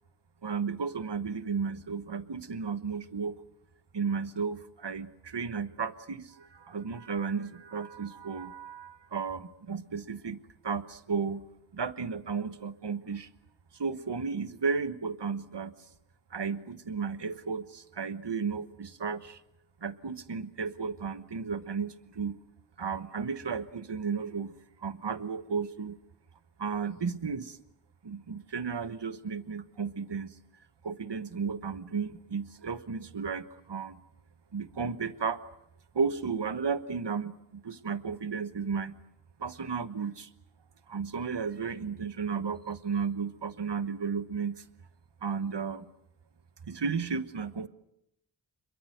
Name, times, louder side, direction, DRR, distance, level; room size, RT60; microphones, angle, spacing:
voice 1, 0.4-3.4 3.9-10.4 10.6-13.3 13.7-15.8 16.3-19.4 19.8-22.4 22.8-26.0 26.6-27.6 28.0-30.4 30.8-34.0 34.5-35.4 35.9-39.0 39.4-40.3 40.9-44.6 45.2-45.8 46.7-47.7, right 5 dB, 65° right, 13 dB, 1.2 m, -34 dB
27.0 x 22.5 x 7.9 m, 0.79 s
wide cardioid pair, 60°, 46 cm